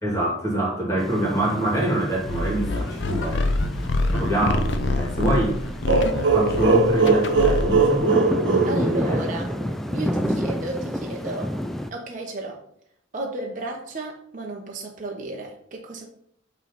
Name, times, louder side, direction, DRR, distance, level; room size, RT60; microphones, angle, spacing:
voice 1, 0.0-3.4 4.1-5.5 6.3-9.2 10.1-10.2, right 1 dB, 15° left, -3 dB, 2.4 m, -25 dB
sound 1, 1.0-11.9, equal, ahead, 0.3 m, -31 dB
sound 2, 2.2-8.0, left 2 dB, 65° left, 0.6 m, -26 dB
sound 3, 5.9-9.6, right 4 dB, 80° right, 0.7 m, -20 dB
voice 2, 8.7-9.6 9.9-11.5 11.9-12.6 13.1-16.1, right 2 dB, 45° right, 0 dB, 0.8 m, -33 dB
8.1 x 3.2 x 4.0 m, 0.70 s
head